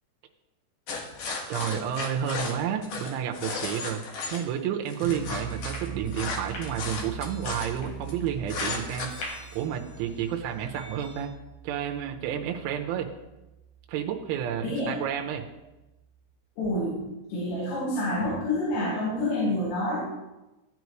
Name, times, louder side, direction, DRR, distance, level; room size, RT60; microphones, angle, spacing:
sound 1, 0.9-4.4 4.9-8.1 8.5-9.2, left 4 dB, 60° left, 2.4 m, -34 dB
voice 1, 1.5-4.0 4.3-9.1 9.5-11.3 11.6-13.1 13.9-15.5, right 9 dB, 90° right, 2 dB, 3.2 m, -30 dB
sound 2, 5.0-16.2, right 6 dB, 75° right, 2.6 m, -42 dB
sound 3, 5.2-11.2, left 1 dB, 45° left, 4.4 m, -45 dB
voice 2, 14.6-15.0 16.6-17.0 17.3-20.0, left 1 dB, 85° left, -8 dB, 5.3 m, -28 dB
16.5 x 9.4 x 3.1 m, 1.0 s
omnidirectional pair, 5.4 m